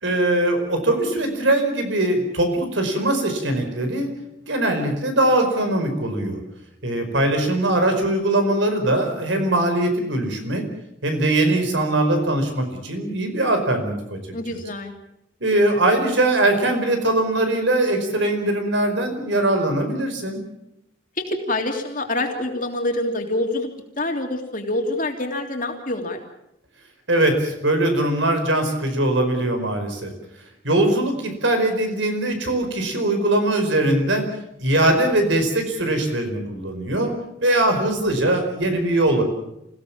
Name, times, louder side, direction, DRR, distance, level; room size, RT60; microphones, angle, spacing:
voice 1, 0.0-4.1 4.4-6.4 6.8-10.7 11.0-14.2 15.4-20.4 27.1-30.1 30.6-34.3 34.6-37.1 37.4-39.2, right 1 dB, 80° right, 6 dB, 4.9 m, -21 dB
voice 2, 14.3-14.9 21.2-23.7 24.0-26.2, left 2 dB, 45° left, 3 dB, 3.2 m, -26 dB
27.5 x 16.5 x 7.3 m, 0.83 s
head